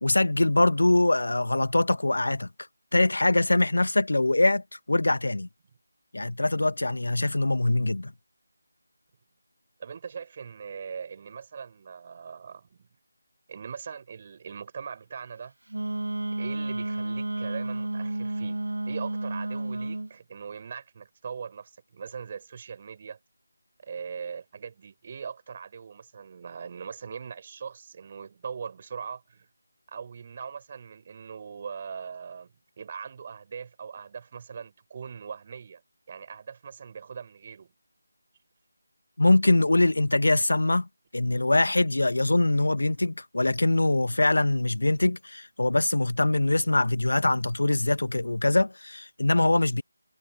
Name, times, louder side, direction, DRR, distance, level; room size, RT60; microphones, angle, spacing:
voice 1, 0.0-2.5 2.9-5.5 6.1-8.1 39.2-40.9 41.1-49.8, left 2 dB, 70° left, 0.9 m, -23 dB
voice 2, 9.8-12.9 13.5-15.5 16.4-23.2 23.8-29.5 29.9-35.8 36.1-37.7 41.9-42.0, right 6 dB, 35° right, 5.1 m, -41 dB
Wind instrument woodwind instrument, 15.7-20.1, right 2 dB, 75° right, 0.9 m, -31 dB
figure-of-eight pair, 160°, 0 cm